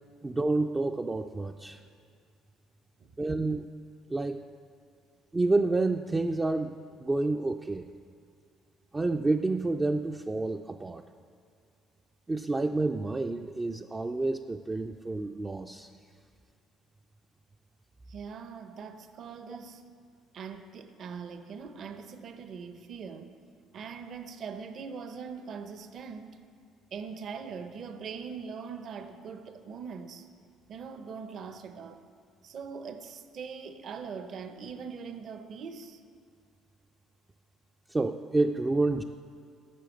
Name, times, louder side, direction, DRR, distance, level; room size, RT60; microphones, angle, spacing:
voice 1, 0.2-1.8 3.2-3.7 4.1-4.5 5.3-7.9 8.9-11.0 12.3-15.9 37.9-39.0, right 2 dB, 15° right, 5 dB, 0.4 m, -29 dB
voice 2, 18.1-19.8 20.3-23.3 23.7-26.4 26.9-30.3 30.7-32.0 32.4-36.0, right 6 dB, 50° right, 9 dB, 0.8 m, -41 dB
12.0 x 7.0 x 7.9 m, 2.3 s
cardioid pair, 120°, 0 cm